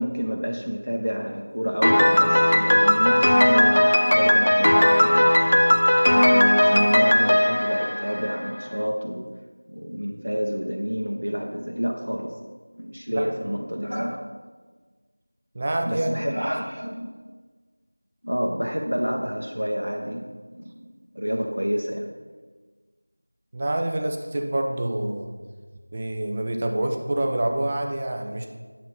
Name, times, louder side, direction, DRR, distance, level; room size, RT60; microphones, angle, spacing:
voice 1, 0.0-5.4 6.1-9.3 9.7-12.4 12.8-14.2 15.8-17.2 18.2-20.9 21.1-22.1, equal, 70° right, 0 dB, 0.9 m, -29 dB
Piano, 1.8-8.6, left 1 dB, 50° left, 0.3 m, -18 dB
voice 2, 15.5-16.2 23.5-25.3 25.9-28.4, right 1 dB, 20° right, 3 dB, 0.5 m, -26 dB
9.5 x 7.1 x 4.2 m, 1.4 s
figure-of-eight pair, 175°, 0 cm